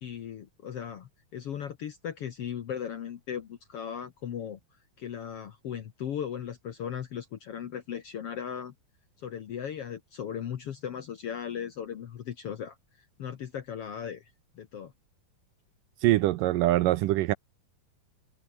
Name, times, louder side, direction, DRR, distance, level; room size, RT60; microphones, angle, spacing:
voice 1, 0.0-4.6 5.0-8.7 9.2-14.9, left 8 dB, 75° left, 1.3 m, -37 dB
voice 2, 16.0-17.3, right 16 dB, 80° right, 2.0 m, -23 dB
omnidirectional pair, 4.6 m